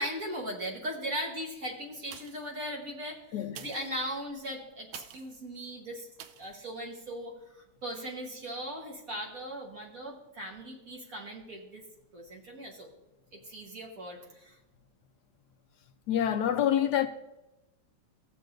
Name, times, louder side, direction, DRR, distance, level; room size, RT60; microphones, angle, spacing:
voice 1, 0.0-6.1 6.3-11.8 12.1-12.9 13.3-14.6, equal, 50° right, 1.5 m, -38 dB
sound 1, 2.0-2.6 3.4-5.4 6.2-6.6 7.1-7.2, right 9 dB, 80° right, 1.4 m, -49 dB
voice 2, 3.3-3.7 16.1-17.1, left 10 dB, 70° left, 1.0 m, -27 dB
16.0 x 6.9 x 2.5 m
omnidirectional pair, 2.1 m